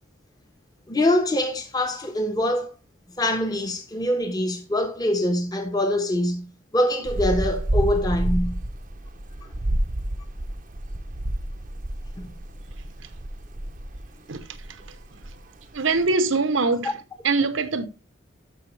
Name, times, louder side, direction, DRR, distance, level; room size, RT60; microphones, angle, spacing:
voice 1, 0.9-2.7 3.2-8.6 9.4-9.5 12.2-12.3, left 1 dB, 20° left, 1.2 m, -24 dB
sound 1, 7.0-14.1 14.4-15.6 15.9-16.0, right 1 dB, 45° right, 0.8 m, -29 dB
voice 2, 14.3-15.0 15.7-17.0 17.2-17.9, right 3 dB, 80° right, 1.0 m, -23 dB
12.5 x 5.6 x 3.3 m
head